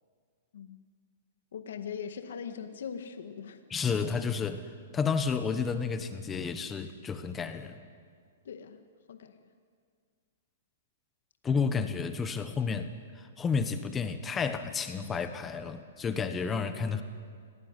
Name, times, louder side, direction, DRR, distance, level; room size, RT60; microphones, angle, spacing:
voice 1, 1.5-3.6 8.5-9.4, left 7 dB, 70° left, 7 dB, 1.8 m, -41 dB
voice 2, 3.7-4.7 4.9-7.8 11.4-17.0, left 5 dB, 15° left, 9 dB, 1.3 m, -31 dB
26.0 x 18.0 x 9.8 m, 2.1 s
hypercardioid pair, 155°, 0 cm